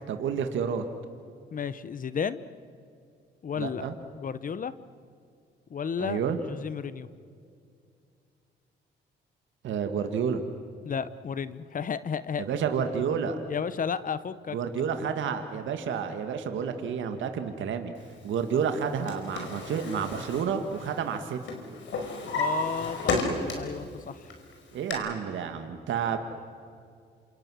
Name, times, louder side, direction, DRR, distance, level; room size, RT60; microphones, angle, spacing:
voice 1, 0.1-0.8 3.6-3.9 6.0-6.4 9.6-10.4 12.4-13.4 14.5-17.9 18.2-21.4 24.7-26.2, right 7 dB, 75° right, 7 dB, 1.8 m, -30 dB
voice 2, 1.5-2.5 3.4-3.9 4.1-4.7 5.7-7.1 10.8-12.6 13.5-14.6 22.3-24.3, left 7 dB, 45° left, 15 dB, 0.9 m, -33 dB
Drawer open or close, 18.7-21.2 21.5-23.8 24.2-24.9, left 3 dB, 70° left, 5.2 m, -32 dB
28.0 x 27.0 x 6.3 m, 2.3 s
cardioid pair, 90°, 20 cm